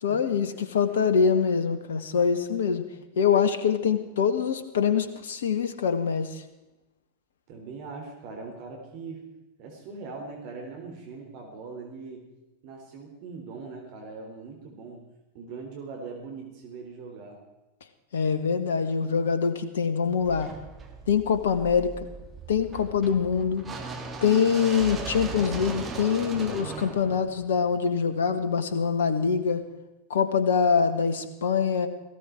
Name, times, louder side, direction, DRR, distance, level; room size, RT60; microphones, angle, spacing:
voice 1, 0.0-2.8 3.1-6.4 18.1-20.5 21.1-22.1 22.5-23.7 24.2-29.6 30.1-31.9, left 6 dB, 60° left, 10 dB, 1.7 m, -24 dB
voice 2, 7.5-9.2 9.6-12.2 12.6-15.0 15.3-17.4, right 4 dB, 45° right, 1 dB, 3.9 m, -41 dB
sound 1, 20.2-28.3, right 4 dB, 20° right, 2.8 m, -38 dB
18.5 x 16.5 x 4.6 m, 1.0 s
figure-of-eight pair, 90°, 0 cm